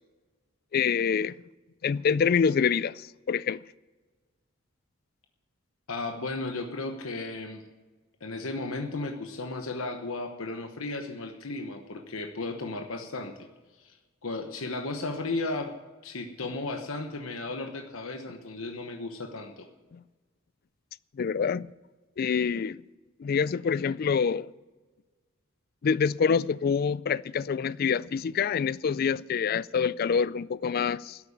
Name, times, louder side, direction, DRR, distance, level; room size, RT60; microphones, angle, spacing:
voice 1, 0.7-1.4 1.8-3.6 19.9-20.0 21.2-21.7 22.2-22.8 23.2-24.5 25.8-31.2, left 6 dB, 45° left, 0.3 m, -26 dB
voice 2, 5.9-7.6 8.2-13.4 13.8-14.0 14.2-15.7 16.0-19.7, left 2 dB, 80° left, 1.1 m, -35 dB
12.0 x 8.4 x 8.5 m
head